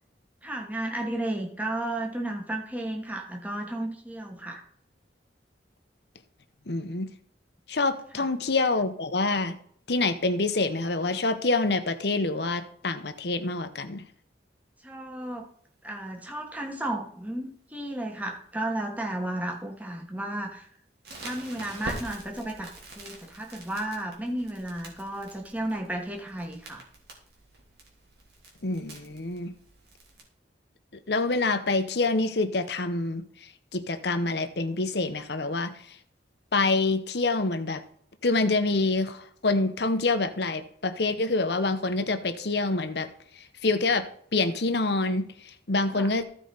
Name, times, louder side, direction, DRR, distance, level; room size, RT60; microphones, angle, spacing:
voice 1, 0.4-4.6 8.1-8.3 14.8-15.5 15.8-20.7 21.2-22.7 23.0-26.8 45.9-46.1, right 1 dB, 10° right, 2 dB, 1.3 m, -33 dB
voice 2, 6.7-7.1 7.7-9.6 9.9-14.0 28.6-29.5 31.1-33.2 33.7-35.8 36.5-37.8 38.2-43.1 43.6-45.3 45.7-46.2, left 3 dB, 65° left, 10 dB, 0.9 m, -26 dB
Crackle, 21.0-30.2, right 1 dB, 65° right, 3.0 m, -45 dB
15.0 x 4.9 x 4.0 m, 0.64 s
head